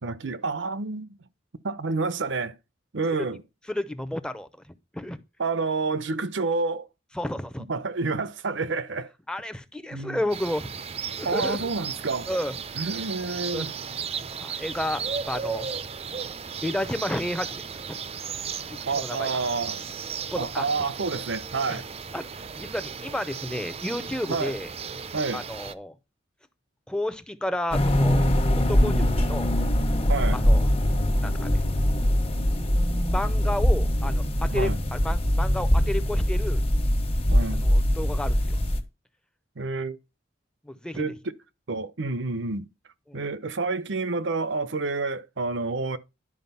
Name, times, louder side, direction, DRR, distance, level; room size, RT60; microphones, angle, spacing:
voice 1, 0.0-1.2 1.6-2.6 2.9-3.4 5.4-6.9 7.7-9.1 9.9-10.2 11.2-12.3 12.8-13.7 18.9-19.8 20.4-21.9 24.3-24.5 25.1-25.4 30.1-30.4 34.5-34.8 37.3-37.7 39.6-40.0 41.0-41.2 41.7-42.7 43.1-46.0, right 3 dB, 75° right, 0.8 m, -29 dB
voice 2, 3.7-5.2 7.1-7.6 9.3-10.7 11.2-11.6 12.3-12.5 13.5-13.7 14.4-15.7 16.6-18.0 18.7-19.3 20.3-20.7 21.7-21.8 22.1-22.3 22.6-24.7 25.3-25.9 26.9-28.2 28.6-29.6 30.3-30.7 31.2-31.5 33.1-36.6 37.6-38.6 40.6-41.1 43.1-43.3, left 1 dB, 5° left, 0.7 m, -31 dB
sound 1, 10.3-25.7, right 6 dB, 35° right, 0.6 m, -35 dB
sound 2, 27.7-38.8, equal, 35° left, 1.3 m, -22 dB
11.0 x 5.0 x 5.5 m
head